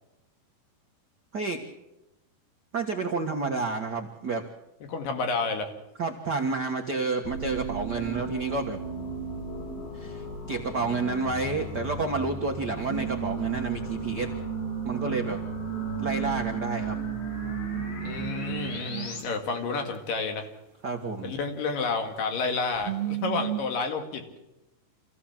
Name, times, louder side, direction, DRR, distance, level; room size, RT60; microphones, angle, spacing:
voice 1, 2.7-4.4 6.0-8.8 9.9-14.3 14.8-15.4 16.0-17.0 20.8-21.3, right 3 dB, 55° right, 3 dB, 1.1 m, -30 dB
voice 2, 4.9-5.7 18.0-20.5 21.2-24.2, left 4 dB, 70° left, 5 dB, 3.7 m, -30 dB
sound 1, 7.2-19.2, left 3 dB, 85° left, 5.3 m, -38 dB
sound 2, 7.3-10.5 12.9-19.3 22.7-23.6, right 14 dB, 85° right, 2.9 m, -34 dB
26.0 x 16.0 x 7.4 m, 0.95 s
omnidirectional pair, 4.2 m